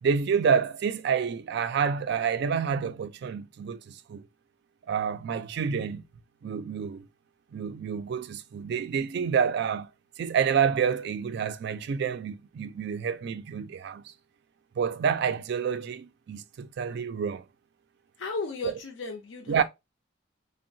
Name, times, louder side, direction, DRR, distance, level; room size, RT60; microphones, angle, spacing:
voice 1, 0.0-4.3 4.9-6.0 6.4-7.1 7.5-9.9 10.2-14.1 14.8-17.5 18.6-18.7 19.5-19.6, right 7 dB, 55° right, 0.3 m, -28 dB
voice 2, 18.2-19.6, left 3 dB, 65° left, 0.5 m, -35 dB
3.6 x 2.0 x 2.5 m
head